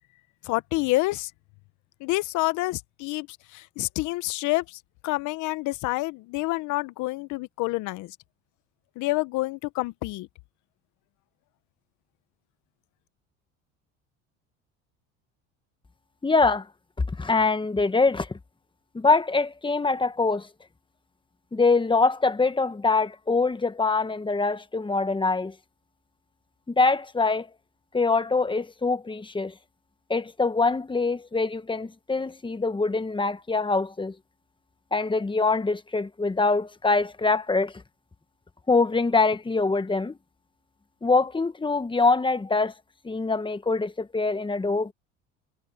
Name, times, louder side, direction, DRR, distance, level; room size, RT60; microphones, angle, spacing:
voice 1, 0.4-1.3 2.0-3.3 3.5-8.2 9.0-10.3, left 20 dB, 65° left, 1.1 m, -28 dB
voice 2, 16.2-16.7 17.2-18.3 18.9-20.5 21.5-25.5 26.7-27.5 27.9-29.5 30.1-34.1 34.9-37.7 38.7-40.2 41.0-42.7 43.0-44.9, left 3 dB, 15° left, 1.6 m, -24 dB
supercardioid pair, 85°, 31 cm